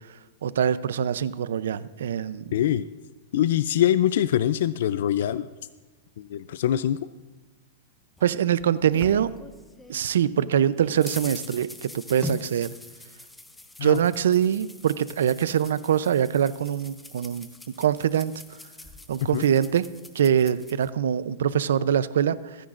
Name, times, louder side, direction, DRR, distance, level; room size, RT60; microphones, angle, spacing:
voice 1, 0.4-2.5 8.2-9.3 9.9-12.7 13.8-17.5 17.8-18.3 19.1-19.9 20.1-22.6, right 9 dB, 85° right, 16 dB, 0.5 m, -23 dB
voice 2, 2.5-2.9 3.3-5.5 6.2-7.0 13.8-14.0 19.3-19.4, left 11 dB, 65° left, 14 dB, 0.4 m, -23 dB
sound 1, 8.2-10.0 10.4-20.9, left 2 dB, 5° left, 0.6 m, -43 dB
25.5 x 10.0 x 2.5 m, 1.3 s
supercardioid pair, 165°, 0 cm